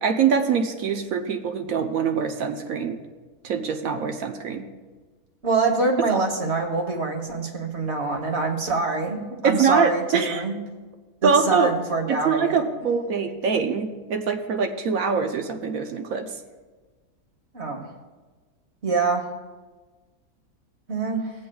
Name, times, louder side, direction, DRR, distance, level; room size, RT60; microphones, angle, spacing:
voice 1, 0.0-3.0 3.4-4.7 6.1-6.2 9.4-10.4 11.2-11.7 12.1-16.3, right 5 dB, 70° right, 6 dB, 1.1 m, -24 dB
voice 2, 5.4-10.5 11.2-12.5 17.5-17.9 18.8-19.2 20.9-21.3, right 3 dB, 45° right, 3 dB, 1.5 m, -25 dB
19.0 x 7.6 x 2.3 m, 1.3 s
omnidirectional pair, 1.6 m